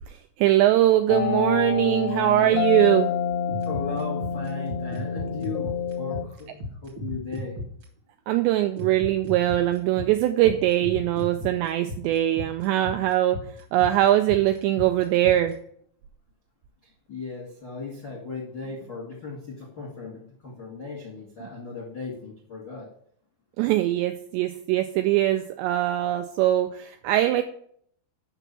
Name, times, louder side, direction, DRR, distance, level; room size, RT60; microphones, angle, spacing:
voice 1, 0.1-3.1 8.3-13.4 13.7-15.6 23.6-27.4, right 14 dB, 90° right, 7 dB, 2.5 m, -22 dB
sound 1, 1.1-6.2, left 8 dB, 85° left, 2.6 m, -28 dB
sound 2, 3.3-7.8 8.8-15.5, left 1 dB, 65° right, 1.1 m, -34 dB
voice 2, 3.6-7.6 17.1-22.9, left 4 dB, 65° left, -2 dB, 1.0 m, -37 dB
6.9 x 6.1 x 6.8 m, 0.65 s
omnidirectional pair, 5.5 m